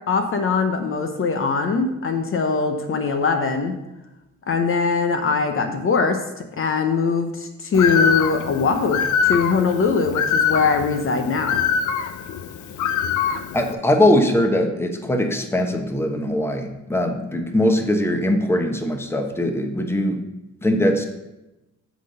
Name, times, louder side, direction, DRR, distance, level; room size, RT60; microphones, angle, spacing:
voice 1, 0.1-3.7 4.5-11.6, left 5 dB, 45° left, 6 dB, 0.8 m, -21 dB
Bird, 7.7-13.7, left 7 dB, 75° left, 0.7 m, -23 dB
voice 2, 13.5-20.2 20.6-21.1, left 1 dB, 10° left, 5 dB, 1.0 m, -21 dB
8.2 x 4.0 x 6.5 m, 0.97 s
cardioid pair, 90°, 30 cm